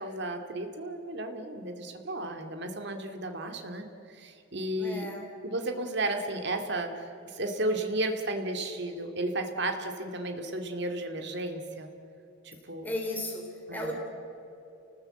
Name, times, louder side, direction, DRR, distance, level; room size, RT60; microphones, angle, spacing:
voice 1, 0.0-5.1 5.4-11.9 12.4-12.9 13.7-13.9, right 1 dB, 60° right, 5 dB, 2.3 m, -33 dB
voice 2, 4.8-5.2 12.8-13.9, left 1 dB, 10° left, 0 dB, 3.2 m, -35 dB
29.0 x 19.5 x 7.8 m, 2.8 s
head